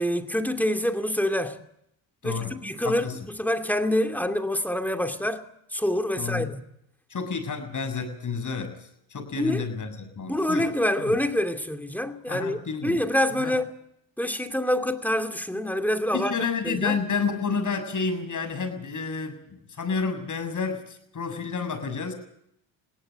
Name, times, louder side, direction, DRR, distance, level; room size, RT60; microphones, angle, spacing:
voice 1, 0.0-1.6 2.2-5.4 5.7-6.6 9.3-9.7 10.2-13.7 14.2-16.4 16.6-17.0, left 1 dB, 5° left, 2.6 m, -26 dB
voice 2, 2.2-2.6 2.8-3.2 6.2-6.5 7.1-10.7 11.0-11.2 12.3-13.0 13.4-13.5 16.1-22.1, left 5 dB, 45° left, 6.9 m, -30 dB
21.5 x 17.5 x 8.9 m
supercardioid pair, 70°, 42 cm